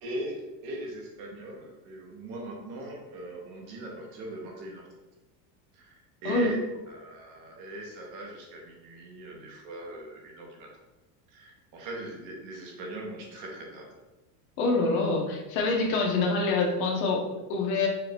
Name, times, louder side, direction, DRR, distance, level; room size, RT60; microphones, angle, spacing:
voice 1, 0.0-4.9 5.7-6.6 6.9-10.7 11.3-13.9, right 1 dB, 45° right, -1 dB, 0.9 m, -40 dB
voice 2, 14.6-17.9, left 3 dB, 70° left, 0 dB, 1.1 m, -26 dB
4.6 x 2.4 x 3.4 m, 1.1 s
supercardioid pair, 165°, 44 cm